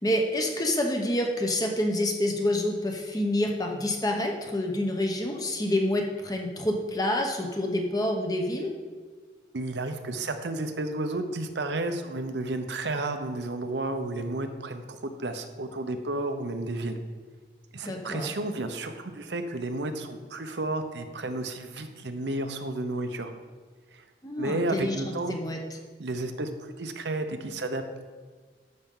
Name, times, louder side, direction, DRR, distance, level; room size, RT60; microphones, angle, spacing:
voice 1, 0.0-8.7 17.8-18.3 24.2-25.6, left 1 dB, 20° left, 2 dB, 1.0 m, -28 dB
voice 2, 9.5-17.0 17.7-23.3 23.9-24.0 24.4-25.4 26.0-28.0, right 2 dB, 85° right, 7 dB, 0.8 m, -32 dB
11.5 x 6.7 x 3.8 m, 1.5 s
head